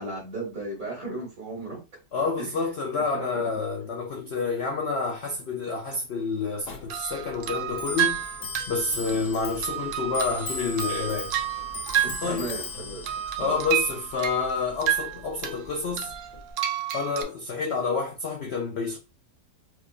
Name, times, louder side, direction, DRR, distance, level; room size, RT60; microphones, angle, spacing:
voice 1, 0.0-1.8 2.4-2.6 2.9-3.5 9.1-9.3 12.0-13.0 13.4-13.6, right 2 dB, 55° right, 2.0 m, -36 dB
voice 2, 2.1-8.3 8.7-11.4 12.2-12.5 13.4-16.1 16.9-19.0, left 4 dB, 80° left, 0.5 m, -28 dB
Clock, 6.7-16.5, left 3 dB, 60° left, 1.0 m, -39 dB
sound 1, 6.9-12.7 13.0-15.6 16.0-17.2, right 11 dB, 75° right, 0.7 m, -30 dB
4.7 x 2.4 x 2.4 m
omnidirectional pair, 1.8 m